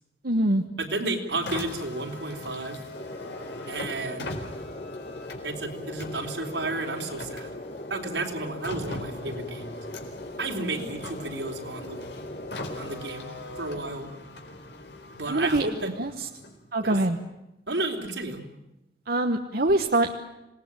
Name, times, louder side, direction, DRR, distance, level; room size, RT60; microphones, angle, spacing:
voice 1, 0.2-0.6 15.3-15.7 16.0-16.3 16.7-17.2 19.1-20.1, right 2 dB, 55° right, 5 dB, 1.2 m, -24 dB
voice 2, 0.8-2.8 3.7-4.3 5.4-7.5 7.9-9.7 10.4-12.1 12.8-13.3 13.6-14.1 15.1-15.9 16.8-17.0 17.7-18.4, right 2 dB, 80° right, 2 dB, 3.7 m, -32 dB
Car, 1.3-16.8, left 1 dB, 70° left, 4.3 m, -41 dB
sound 1, 2.9-13.0, left 1 dB, 45° left, 1.7 m, -40 dB
26.5 x 19.0 x 8.9 m, 0.94 s
head